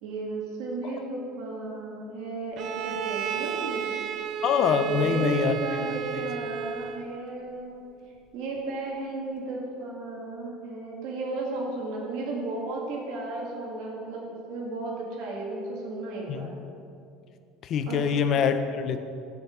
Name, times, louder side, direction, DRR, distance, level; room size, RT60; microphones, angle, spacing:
voice 1, 0.0-3.9 4.8-7.9 8.3-16.5 17.9-18.0, right 2 dB, 65° right, -2 dB, 1.8 m, -34 dB
Bowed string instrument, 2.6-7.2, right 9 dB, 40° right, 0.4 m, -32 dB
voice 2, 4.4-5.6 6.1-6.2 16.3-16.5 17.6-19.0, left 7 dB, 40° left, 9 dB, 0.6 m, -24 dB
12.0 x 5.1 x 5.9 m, 2.5 s
cardioid pair, 160°, 0 cm